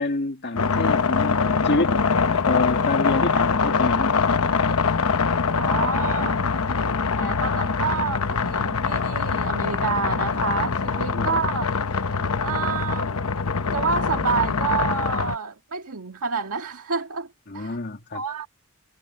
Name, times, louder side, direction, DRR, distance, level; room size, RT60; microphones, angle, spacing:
voice 1, 0.0-2.0 2.3-4.5 6.6-6.7 7.1-7.3 11.1-11.4 17.5-18.2, left 2 dB, 50° left, 1.9 m, -28 dB
sound 1, 0.6-15.4, left 5 dB, 75° left, 1.0 m, -23 dB
voice 2, 5.6-6.4 7.2-11.7 12.4-13.2 13.7-17.3 17.5-17.8 18.1-18.5, right 5 dB, 85° right, 1.9 m, -28 dB
head